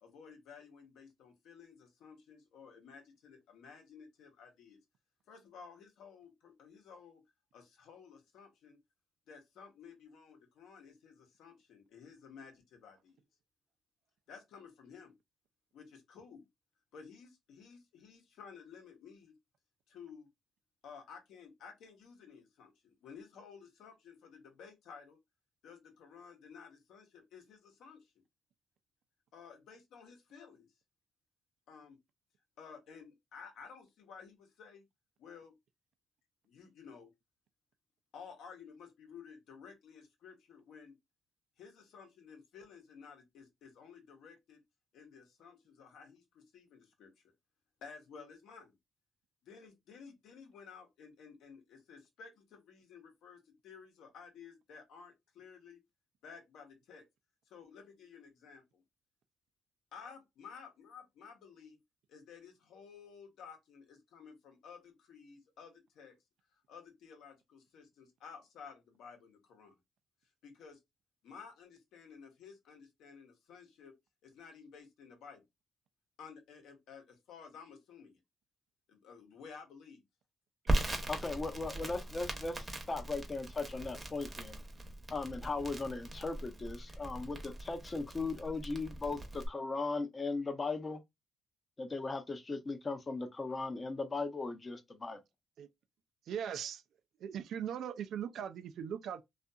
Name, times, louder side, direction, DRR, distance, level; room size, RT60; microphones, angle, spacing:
voice 1, 0.0-4.8 5.3-7.2 7.5-8.8 9.3-13.2 14.3-15.1 15.7-16.4 16.9-19.3 19.9-20.3 20.8-25.2 25.6-28.1 29.3-30.7 31.7-32.0 32.6-34.8 35.2-35.5 36.4-37.1 38.1-40.9 41.6-44.6 44.9-47.3 47.8-48.8 49.4-55.8 56.2-57.0 57.5-58.8 59.9-61.8 62.1-66.1 66.5-69.8 70.4-70.8 71.2-73.9 74.2-75.4 76.2-78.2 78.9-80.0, left 6 dB, 80° left, 0.9 m, -54 dB
Crackle, 80.7-89.5, right 1 dB, 20° right, 0.8 m, -39 dB
voice 2, 81.1-84.6 85.1-91.0 91.8-95.2, left 3 dB, 30° left, 0.5 m, -38 dB
voice 3, 96.3-96.8 97.2-99.2, right 8 dB, 70° right, 0.3 m, -39 dB
2.6 x 2.4 x 2.2 m
cardioid pair, 90°, 0 cm